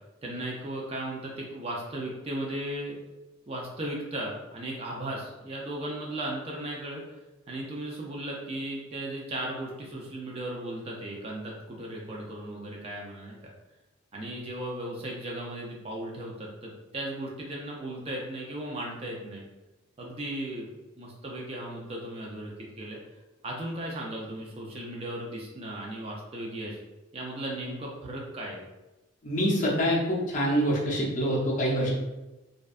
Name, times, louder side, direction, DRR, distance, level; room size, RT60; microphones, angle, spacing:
voice 1, 0.2-3.0 3.5-7.0 7.5-13.4 14.1-19.4 20.0-20.7 21.0-23.0 23.4-26.8 27.1-28.6, right 1 dB, 30° right, -2 dB, 0.3 m, -36 dB
voice 2, 29.2-31.9, equal, 40° left, -4 dB, 0.5 m, -25 dB
2.5 x 2.2 x 2.3 m, 1.0 s
head